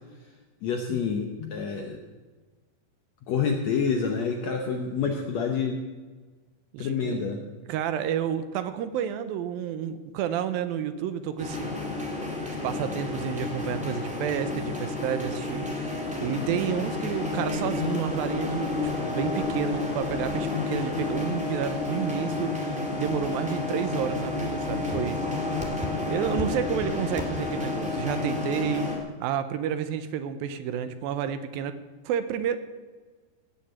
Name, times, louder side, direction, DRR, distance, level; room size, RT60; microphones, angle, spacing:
voice 1, 0.6-2.0 3.3-5.8 6.8-7.4, left 6 dB, 75° left, 3 dB, 1.6 m, -28 dB
voice 2, 6.7-7.2 7.7-11.8 12.6-25.2 25.7-31.7 32.1-32.6, right 9 dB, 85° right, 11 dB, 2.5 m, -30 dB
sound 1, 11.4-29.0, left 3 dB, 5° right, 1.4 m, -30 dB
17.0 x 6.5 x 8.0 m, 1.4 s
omnidirectional pair, 4.2 m